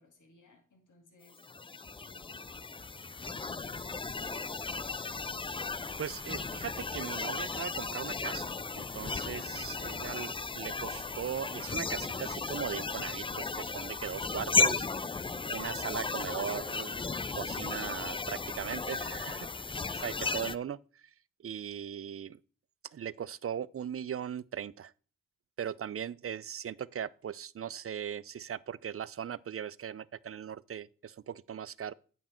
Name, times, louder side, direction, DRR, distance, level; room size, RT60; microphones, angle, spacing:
voice 1, 0.0-1.4 2.0-2.4 2.9-5.6, left 3 dB, 70° left, 2.2 m, -61 dB
sound 1, 1.4-20.6, left 4 dB, 15° left, 0.4 m, -35 dB
voice 2, 6.0-14.9 15.5-17.0 17.3-19.5 19.9-20.8 21.4-22.4 22.9-24.9 25.6-31.9, right 8 dB, 45° right, 0.5 m, -39 dB
8.8 x 6.2 x 4.4 m
cardioid pair, 45°, 31 cm